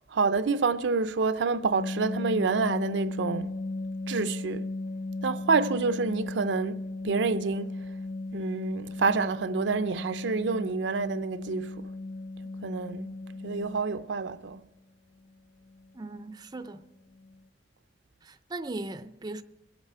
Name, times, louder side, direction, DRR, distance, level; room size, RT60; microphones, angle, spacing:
voice 1, 0.1-3.6 4.1-4.7 5.2-7.8 8.3-11.9 12.6-13.1 13.4-14.6, right 4 dB, 75° right, 0.5 m, -28 dB
sound 1, 1.7-13.8 15.7-15.9 16.2-16.3 16.7-16.8 17.1-17.4, left 2 dB, 80° left, 0.6 m, -36 dB
voice 2, 15.9-16.8 18.2-19.4, right 2 dB, 20° right, 0.4 m, -38 dB
23.5 x 8.2 x 4.5 m
head